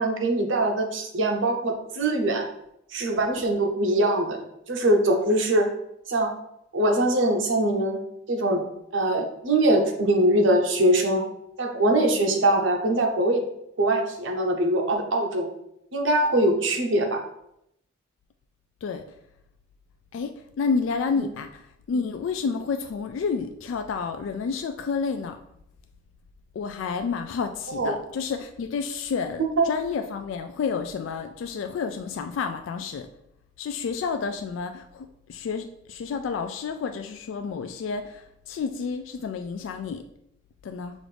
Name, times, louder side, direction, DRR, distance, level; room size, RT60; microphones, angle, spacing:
voice 1, 0.0-2.4 2.9-5.7 6.1-6.3 6.7-8.0 8.3-8.6 8.9-11.3 11.6-13.4 13.8-15.5 15.9-17.2 21.2-21.3 27.7-27.9 29.6-29.7, right 1 dB, 85° right, 2 dB, 0.8 m, -22 dB
voice 2, 20.1-21.6 21.9-25.4 26.6-33.1 33.6-40.0 40.6-40.9, left 5 dB, 85° left, 7 dB, 0.3 m, -30 dB
6.2 x 2.5 x 3.3 m, 0.79 s
head